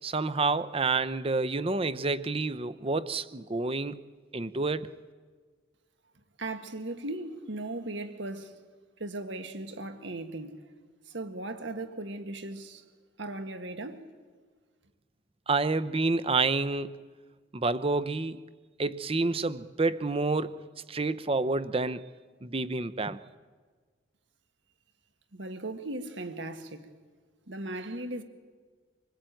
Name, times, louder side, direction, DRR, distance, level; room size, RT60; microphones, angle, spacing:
voice 1, 0.0-4.0 4.3-5.0 15.5-17.0 17.5-18.4 18.8-20.6 20.9-22.1 22.4-23.2, right 3 dB, 30° right, 0.7 m, -29 dB
voice 2, 6.4-8.6 9.0-10.7 11.1-12.8 13.2-14.0 25.3-26.9 27.5-28.2, right 2 dB, 70° right, 1.7 m, -37 dB
26.0 x 20.0 x 9.1 m
head